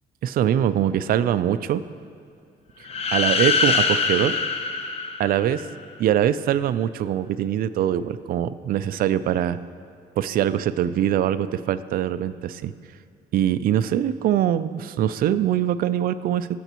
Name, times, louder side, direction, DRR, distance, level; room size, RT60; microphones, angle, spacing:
voice 1, 0.2-1.8 3.1-4.4 5.2-5.7 6.0-9.6 10.2-12.7 13.3-16.5, right 10 dB, 60° right, 12 dB, 0.5 m, -23 dB
sound 1, 2.8-5.8, left 4 dB, 35° left, 0.8 m, -23 dB
23.5 x 7.9 x 3.0 m, 2.4 s
cardioid pair, 110°, 17 cm